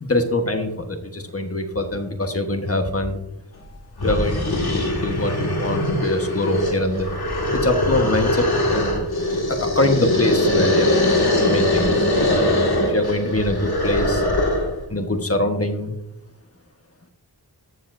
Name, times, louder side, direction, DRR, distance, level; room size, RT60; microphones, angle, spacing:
voice 1, 0.0-3.2 3.6-3.7 4.0-4.7 5.0-7.1 7.5-9.1 9.5-10.9 11.4-12.1 12.5-14.2 14.9-15.9, left 1 dB, 35° left, 5 dB, 1.2 m, -23 dB
sound 1, 3.6-3.7 4.0-14.8, left 1 dB, 65° left, 1.9 m, -21 dB
14.0 x 7.0 x 2.6 m, 0.84 s
wide cardioid pair, 65°, 41 cm